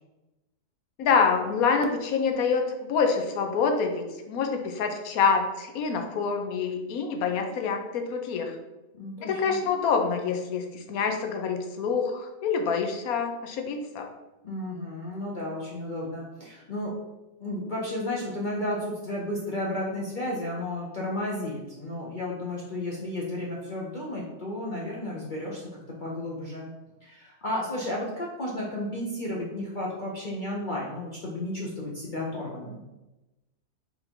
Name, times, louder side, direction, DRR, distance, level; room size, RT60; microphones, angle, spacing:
voice 1, 1.0-8.5 9.2-14.1, left 5 dB, 80° left, 4 dB, 1.1 m, -26 dB
voice 2, 8.9-9.6 14.4-16.9 17.4-25.7 26.0-26.7 27.0-32.8, left 1 dB, 50° left, -4 dB, 0.6 m, -33 dB
4.1 x 2.6 x 4.3 m, 1.0 s
omnidirectional pair, 1.5 m